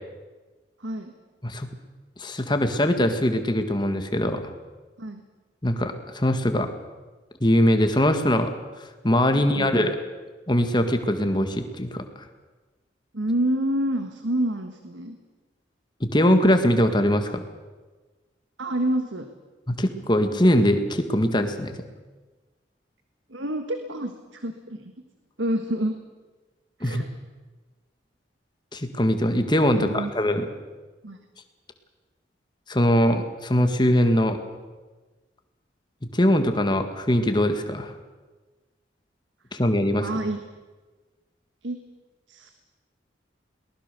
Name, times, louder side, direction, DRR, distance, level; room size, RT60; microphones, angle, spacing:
voice 1, 0.8-1.1 5.0-5.2 9.3-9.9 13.1-15.2 18.6-19.3 23.3-24.9 25.4-26.0 26.8-27.1 29.7-30.1 31.0-31.2 40.0-40.4 41.6-41.8 42.3-42.5, right 1 dB, 85° right, 7 dB, 1.5 m, -28 dB
voice 2, 2.2-4.4 5.6-6.7 7.4-8.5 8.8-10.0 10.5-12.0 16.0-17.4 19.7-21.8 26.8-27.0 28.7-30.5 32.7-34.4 36.1-37.9 39.5-40.1, equal, 25° left, 7 dB, 1.8 m, -22 dB
22.0 x 19.5 x 6.8 m, 1.3 s
head